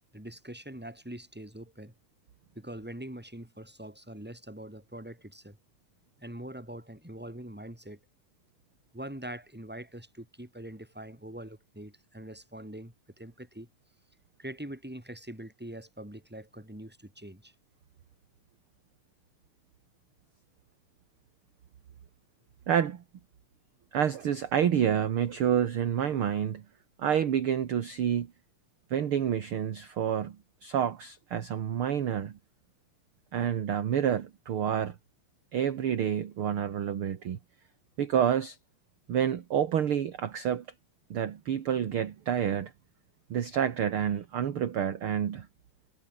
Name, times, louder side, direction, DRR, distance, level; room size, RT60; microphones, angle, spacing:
voice 1, 0.1-1.9 2.5-5.6 6.2-8.0 8.9-13.7 14.4-17.5, right 1 dB, 5° right, 4.8 m, -43 dB
voice 2, 22.7-23.0 23.9-26.6 27.0-28.3 28.9-30.4 30.6-32.4 33.3-35.0 35.5-37.4 38.0-38.6 39.1-40.6 41.1-42.7 43.3-45.5, right 9 dB, 50° right, 2.0 m, -28 dB
omnidirectional pair, 3.7 m